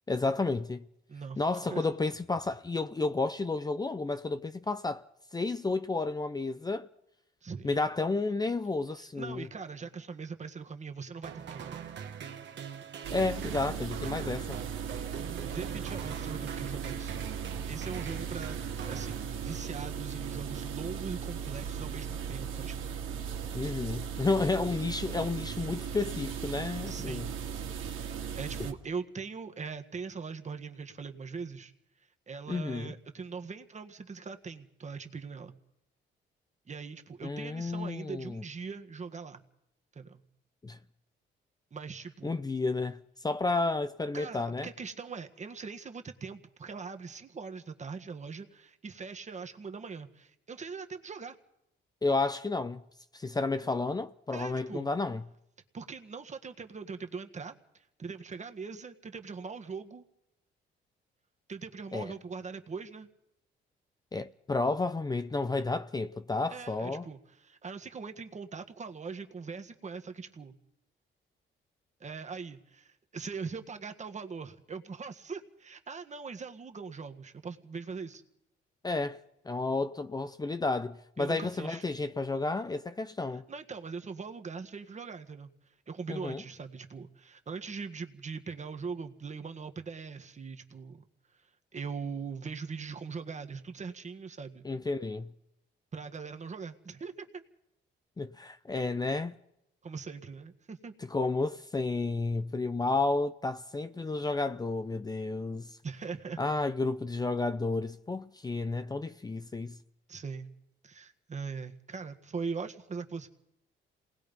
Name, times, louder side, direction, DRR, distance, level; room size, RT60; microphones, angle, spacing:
voice 1, 0.1-0.8 1.4-5.0 5.3-6.9 7.6-9.5 13.1-14.6 23.5-27.2 32.5-32.9 37.2-38.4 40.6-40.8 42.2-44.7 52.0-52.8 53.1-55.2 61.9-62.1 64.1-67.1 78.8-79.2 79.5-83.4 86.1-86.4 94.6-95.3 98.2-99.3 101.1-105.8 106.4-109.8, left 3 dB, 20° left, 0.7 m, -31 dB
voice 2, 1.1-1.9 7.4-7.7 9.0-11.8 14.2-14.3 15.5-17.2 17.4-23.0 26.8-27.4 28.1-31.7 32.3-35.5 36.7-39.4 39.9-40.2 41.7-42.4 44.1-51.4 54.3-54.9 55.7-60.0 61.5-63.1 66.5-70.6 72.0-78.2 81.2-81.8 83.3-85.5 85.9-91.1 91.7-94.6 95.9-97.4 99.8-100.9 105.8-106.4 110.1-110.5 110.8-113.3, right 5 dB, 35° right, 1.7 m, -41 dB
sound 1, 11.2-19.8, right 7 dB, 65° right, 1.8 m, -43 dB
sound 2, 13.0-28.7, right 7 dB, 85° right, 2.1 m, -37 dB
27.5 x 19.5 x 5.4 m
cardioid pair, 90°, 20 cm